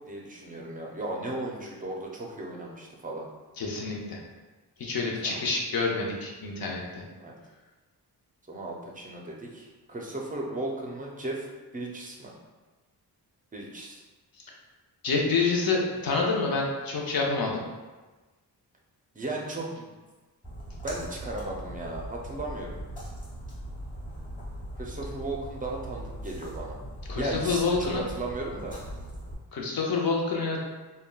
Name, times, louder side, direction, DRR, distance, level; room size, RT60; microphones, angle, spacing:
voice 1, 0.1-3.3 5.2-5.4 7.2-7.3 8.5-11.5 11.7-12.3 13.5-14.0 15.3-15.6 19.1-19.9 20.8-22.7 24.8-26.8 27.2-28.7, right 2 dB, 20° right, -1 dB, 0.5 m, -36 dB
voice 2, 3.6-4.2 4.8-7.0 15.0-17.6 27.1-28.1 29.5-30.6, left 4 dB, 55° left, -1 dB, 0.7 m, -27 dB
Splash splatter, 20.4-29.3, right 1 dB, 20° left, 1.3 m, -40 dB
3.4 x 2.2 x 2.3 m, 1.2 s
wide cardioid pair, 90°, 42 cm